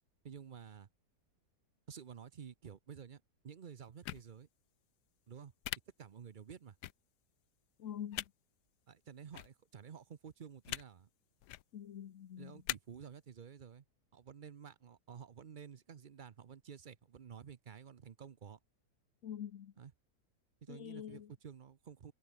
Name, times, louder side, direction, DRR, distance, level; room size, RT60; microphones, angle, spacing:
voice 1, 0.2-0.9 1.9-4.5 5.3-5.5 6.0-6.8 8.9-11.1 12.4-13.8 14.1-18.6 19.8-19.9 20.6-22.1, right 7 dB, 45° right, 0.6 m, -52 dB
sound 1, 4.0-4.2 5.6-5.8 6.8-6.9 8.1-8.3 9.3-9.5 10.6-10.8 11.4-11.6 12.7-12.8, left 14 dB, 85° left, 1.3 m, -39 dB
voice 2, 7.8-8.2 11.7-12.6 19.2-19.7 20.7-21.3, left 9 dB, 55° left, 1.2 m, -45 dB
omnidirectional pair, 1.8 m